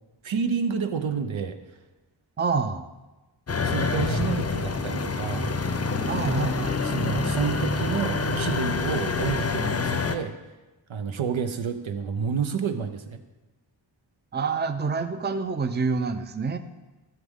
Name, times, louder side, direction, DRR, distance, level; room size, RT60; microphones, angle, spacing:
voice 1, 0.2-1.6 3.6-5.5 6.8-10.4 10.9-13.2, right 6 dB, 80° right, 7 dB, 0.8 m, -29 dB
voice 2, 2.4-2.8 6.1-6.8 14.3-16.6, right 4 dB, 25° right, 9 dB, 0.5 m, -27 dB
sound 1, 3.5-10.2, left 4 dB, 35° left, 0.6 m, -27 dB
12.0 x 7.3 x 3.7 m, 1.1 s
wide cardioid pair, 80°, 46 cm